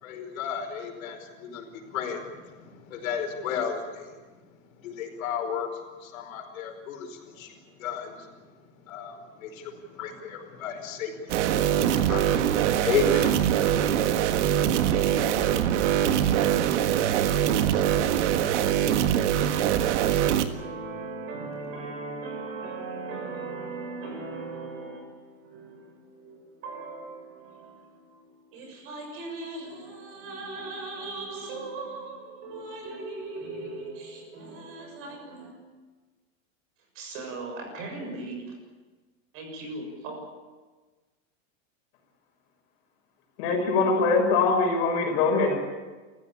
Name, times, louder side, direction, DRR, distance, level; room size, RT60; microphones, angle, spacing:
voice 1, 0.0-4.2 4.8-8.3 8.8-14.5, left 6 dB, 85° left, 4.9 m, -34 dB
sound 1, 11.3-20.5, right 10 dB, 60° right, 1.7 m, -23 dB
voice 2, 20.5-35.5 36.9-38.5 39.3-40.2, right 3 dB, 35° right, 6.7 m, -38 dB
voice 3, 43.4-45.6, left 4 dB, 45° left, 6.0 m, -22 dB
29.0 x 15.5 x 8.7 m
supercardioid pair, 180°, 40 cm